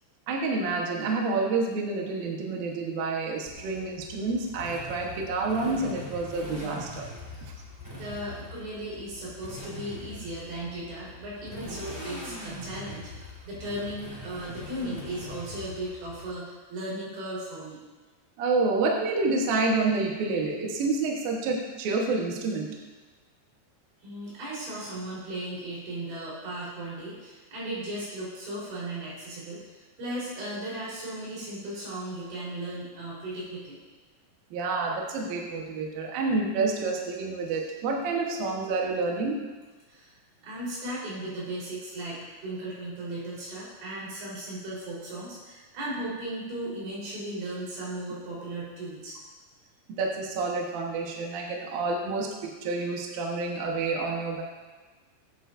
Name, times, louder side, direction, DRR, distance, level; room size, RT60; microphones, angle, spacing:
voice 1, 0.3-7.1 7.4-7.5 18.4-22.7 34.5-39.4 50.0-54.4, right 3 dB, 65° right, -1 dB, 2.7 m, -28 dB
Motorcycle, 3.5-16.3, left 1 dB, 5° right, 2.5 m, -42 dB
voice 2, 7.9-17.8 24.0-33.8 39.9-40.2 40.4-49.1, right 1 dB, 85° right, -7 dB, 6.6 m, -36 dB
20.5 x 9.0 x 2.7 m, 1.3 s
omnidirectional pair, 5.2 m